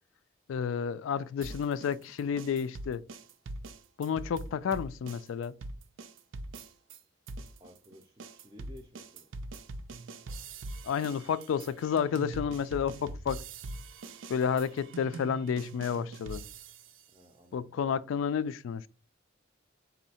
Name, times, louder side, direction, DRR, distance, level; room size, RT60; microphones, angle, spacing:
voice 1, 0.5-3.0 4.0-5.5 10.8-13.4 14.3-16.4 17.5-18.9, left 7 dB, 85° left, 0.3 m, -31 dB
sound 1, 1.4-7.0 7.3-17.0, right 2 dB, 85° right, 0.5 m, -43 dB
voice 2, 7.6-9.3 17.1-17.9, left 1 dB, 20° right, 0.4 m, -55 dB
4.1 x 2.7 x 4.1 m
head